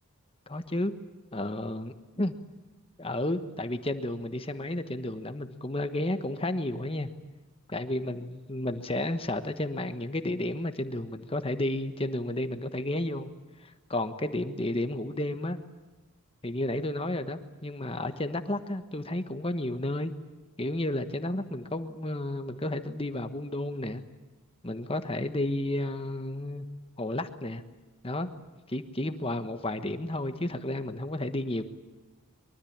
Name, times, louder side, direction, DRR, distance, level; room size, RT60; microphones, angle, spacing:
voice 1, 0.5-0.9 1.3-2.3 3.0-7.1 7.7-13.3 13.6-15.6 16.4-20.1 20.6-24.0 24.6-26.7 27.0-27.6 28.0-28.3 28.7-31.6, left 1 dB, 25° left, 9 dB, 1.3 m, -32 dB
24.0 x 23.5 x 8.8 m, 1.2 s
head